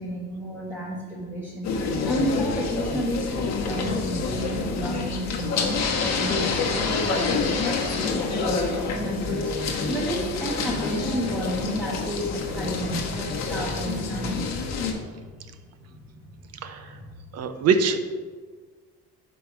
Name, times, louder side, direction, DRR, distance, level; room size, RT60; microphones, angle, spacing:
voice 1, 0.0-5.8 6.2-9.5 9.9-14.5 14.9-15.3 16.1-16.2 16.8-17.1 17.4-17.5, equal, 5° left, -6 dB, 0.9 m, -32 dB
sound 1, 1.6-14.9, left 4 dB, 55° left, 1.0 m, -27 dB
voice 2, 17.3-18.0, right 5 dB, 50° right, 8 dB, 0.6 m, -22 dB
5.8 x 5.1 x 4.9 m, 1.5 s
cardioid pair, 165°, 33 cm